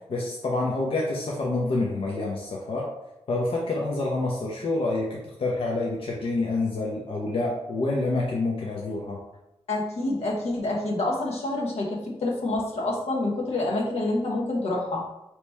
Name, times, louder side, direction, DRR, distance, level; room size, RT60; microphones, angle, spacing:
voice 1, 0.1-2.9 3.3-9.2, left 2 dB, 65° left, -3 dB, 0.7 m, -27 dB
voice 2, 9.7-15.0, left 2 dB, 85° left, -3 dB, 1.1 m, -27 dB
4.1 x 3.0 x 3.4 m, 0.89 s
wide cardioid pair, 110°, 10 cm